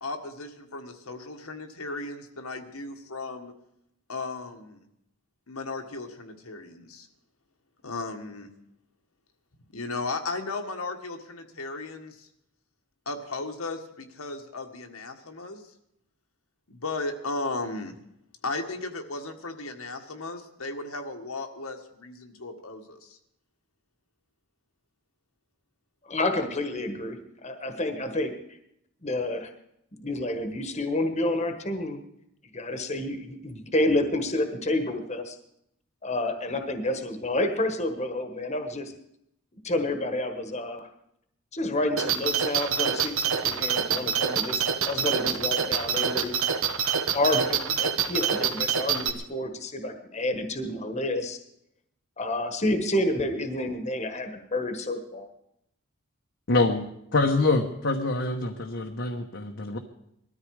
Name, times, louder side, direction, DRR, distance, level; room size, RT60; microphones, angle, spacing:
voice 1, 0.0-3.5 4.1-4.8 5.5-7.1 7.8-8.5 9.7-12.3 13.0-15.6 16.7-17.9 18.4-23.2, left 3 dB, 80° left, 4 dB, 1.7 m, -35 dB
voice 2, 26.1-27.2 27.4-28.3 29.0-29.5 30.0-32.0 32.5-35.4 36.0-38.9 39.6-40.9 41.5-46.3 47.1-51.4 52.2-55.3, left 1 dB, 30° left, 6 dB, 1.4 m, -29 dB
sound 1, 42.0-49.1, right 7 dB, 65° right, 1.3 m, -26 dB
voice 3, 56.5-56.8 57.1-59.8, left 2 dB, 55° left, 2 dB, 1.1 m, -25 dB
20.0 x 13.5 x 4.8 m, 0.78 s
head